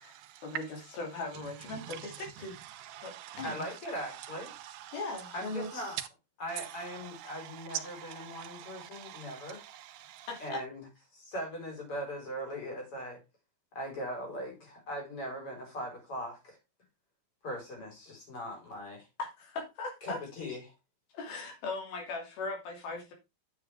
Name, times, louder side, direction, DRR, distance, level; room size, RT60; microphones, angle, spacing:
voice 1, 0.0-6.1 6.5-10.5, right 12 dB, 85° right, 2.8 m, -45 dB
voice 2, 1.0-2.1 2.4-2.6 3.0-3.7 4.9-5.9 10.3-10.6 19.2-20.2 21.1-23.1, left 3 dB, 85° left, 4.6 m, -39 dB
voice 3, 3.4-4.5 5.3-6.0 6.4-9.6 10.4-10.9 11.1-13.2 13.7-16.6 17.4-19.1 20.0-20.7, equal, 35° left, 5.3 m, -40 dB
9.6 x 7.4 x 3.5 m
omnidirectional pair, 4.2 m